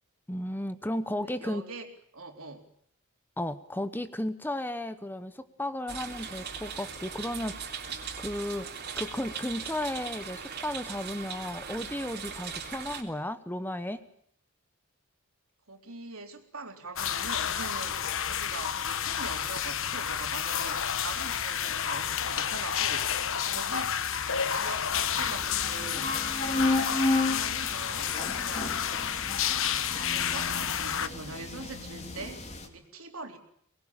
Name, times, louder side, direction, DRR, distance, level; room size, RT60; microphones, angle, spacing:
voice 1, 0.3-1.6 3.4-7.8 8.2-8.7 8.9-14.0, left 1 dB, 10° left, 11 dB, 1.1 m, -34 dB
voice 2, 1.2-2.7 6.0-6.3 15.7-26.8 27.2-28.9 29.9-33.4, right 3 dB, 75° right, 4 dB, 3.9 m, -43 dB
sound 1, 5.9-13.0, right 6 dB, 50° right, 3.5 m, -39 dB
sound 2, 17.0-31.1, left 8 dB, 65° left, 1.2 m, -30 dB
sound 3, 24.9-32.7, left 2 dB, 30° left, 3.3 m, -33 dB
23.5 x 20.5 x 8.9 m, 0.66 s
head